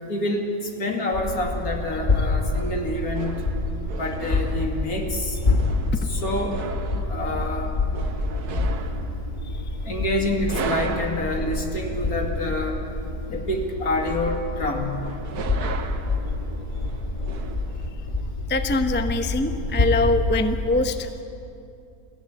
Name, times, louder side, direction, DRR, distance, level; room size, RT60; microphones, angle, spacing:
voice 1, 0.1-0.5 0.8-3.4 4.0-5.4 5.8-6.6 7.1-7.7 9.8-12.8 13.3-15.0, left 1 dB, 70° left, 2 dB, 2.8 m, -27 dB
sound 1, 1.1-20.7, left 2 dB, 30° left, 1.9 m, -27 dB
sound 2, 2.5-17.9, right 4 dB, 80° right, 1.7 m, -38 dB
voice 2, 18.5-21.2, left 2 dB, 10° left, 7 dB, 0.7 m, -23 dB
22.5 x 15.5 x 9.9 m, 2.6 s
omnidirectional pair, 1.6 m